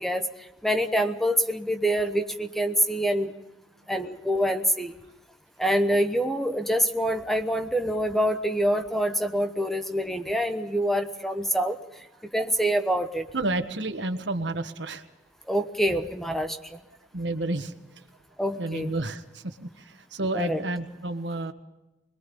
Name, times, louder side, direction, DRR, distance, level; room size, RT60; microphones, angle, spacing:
voice 1, 0.0-3.3 3.9-4.9 5.6-12.0 12.3-13.3 15.5-16.8 18.4-18.9 20.3-20.6, equal, ahead, 7 dB, 1.0 m, -26 dB
voice 2, 13.3-15.0 17.1-18.0 18.6-21.5, right 2 dB, 70° right, 8 dB, 1.5 m, -31 dB
25.5 x 21.5 x 5.4 m, 0.97 s
head